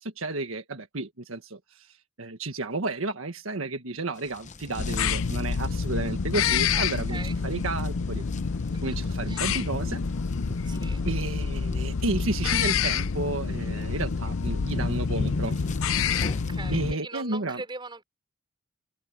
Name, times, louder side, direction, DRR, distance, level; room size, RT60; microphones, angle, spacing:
voice 1, 0.0-8.2 8.8-10.0 11.0-15.7 16.7-17.6, right 2 dB, 80° right, 1.6 m, -32 dB
sound 1, 4.2-16.6, left 2 dB, 35° left, 0.8 m, -38 dB
sound 2, 4.8-16.9, left 6 dB, 75° left, 0.6 m, -28 dB
voice 2, 6.7-7.3 8.6-8.8 9.3-9.5 10.6-11.1 16.2-18.0, right 3 dB, 25° right, 5.1 m, -41 dB
head